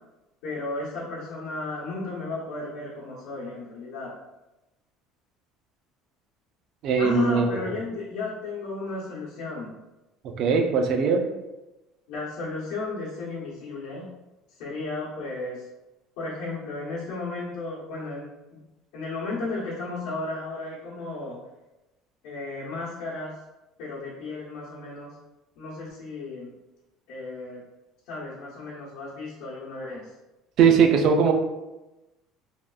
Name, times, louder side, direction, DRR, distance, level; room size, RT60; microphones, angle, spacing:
voice 1, 0.4-4.1 7.0-9.7 12.1-14.1 14.6-15.6 16.2-18.6 18.9-21.4 22.2-23.3 23.8-25.1 25.6-26.5 27.1-27.6 28.1-30.1, left 3 dB, 80° left, -8 dB, 0.8 m, -34 dB
voice 2, 6.8-7.5 10.4-11.3 30.6-31.3, right 6 dB, 45° right, 4 dB, 0.3 m, -20 dB
3.4 x 2.3 x 2.3 m, 1.0 s
cardioid pair, 175°, 0 cm